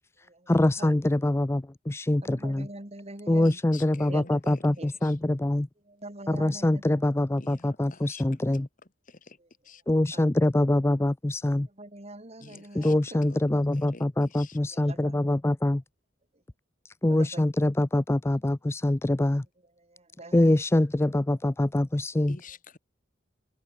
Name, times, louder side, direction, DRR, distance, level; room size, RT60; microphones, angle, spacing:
voice 1, 0.5-2.7 3.3-5.7 6.3-8.7 9.9-11.7 12.7-15.8 16.8-19.5 20.3-22.4, left 1 dB, 15° left, 0.4 m, -24 dB
voice 2, 2.2-3.5 3.9-4.9 5.8-7.0 10.1-10.3 11.8-13.0 14.7-15.3 17.1-17.4 19.8-20.4, right 2 dB, 35° right, 3.4 m, -44 dB
voice 3, 3.4-5.2 7.4-8.4 9.1-9.4 9.6-9.8 12.4-12.9 13.3-14.6 22.3-22.8, left 4 dB, 45° left, 2.1 m, -49 dB
open air
head